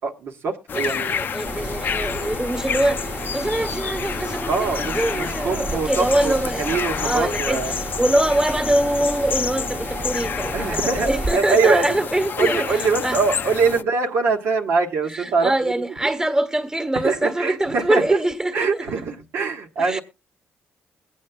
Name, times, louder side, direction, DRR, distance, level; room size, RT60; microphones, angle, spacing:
voice 1, 0.0-1.2 4.5-7.8 10.5-12.0 12.4-15.8 16.9-18.0 18.5-20.0, right 4 dB, 75° right, 1.4 m, -23 dB
sound 1, 0.7-13.8, left 7 dB, 50° left, 0.5 m, -29 dB
voice 2, 0.7-6.8 7.0-7.6 8.0-13.2 15.1-18.9 19.8-20.0, right 1 dB, 15° right, 1.4 m, -24 dB
sound 2, 1.5-11.3, right 2 dB, 30° right, 1.3 m, -32 dB
22.0 x 8.5 x 2.3 m
cardioid pair, 85°, 4 cm